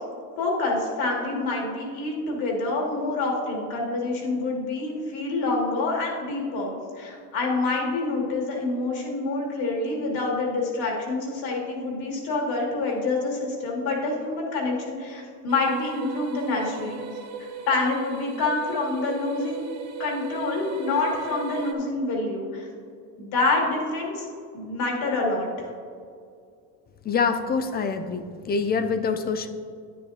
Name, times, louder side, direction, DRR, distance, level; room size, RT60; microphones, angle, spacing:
voice 1, 0.4-17.0 17.7-19.7 20.0-22.7 23.2-24.2 24.5-25.7, left 3 dB, 60° left, -1 dB, 2.5 m, -27 dB
sound 1, 15.5-21.7, right 7 dB, 40° right, 1.0 m, -37 dB
voice 2, 27.0-29.5, left 5 dB, 25° left, 9 dB, 0.4 m, -25 dB
10.0 x 9.6 x 2.8 m, 2.3 s
cardioid pair, 130°, 41 cm